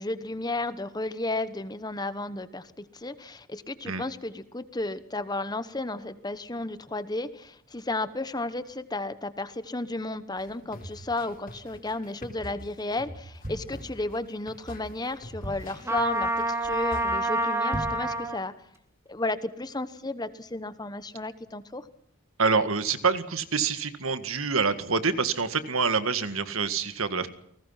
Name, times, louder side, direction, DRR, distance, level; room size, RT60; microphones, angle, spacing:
voice 1, 0.0-18.5 19.1-21.9, left 2 dB, 20° left, 13 dB, 1.1 m, -33 dB
sound 1, 10.4-17.0, equal, 40° left, 4.2 m, -44 dB
sound 2, 13.4-14.4 14.9-15.0 15.1-15.9 16.4-16.6 16.9-17.0 17.5-18.2 18.6-18.7, equal, 40° right, 5.6 m, -37 dB
Trumpet, 15.8-18.4, right 1 dB, 10° right, 2.3 m, -27 dB
voice 2, 22.4-27.3, right 5 dB, 75° right, 11 dB, 1.8 m, -26 dB
29.5 x 19.0 x 5.8 m, 0.69 s
head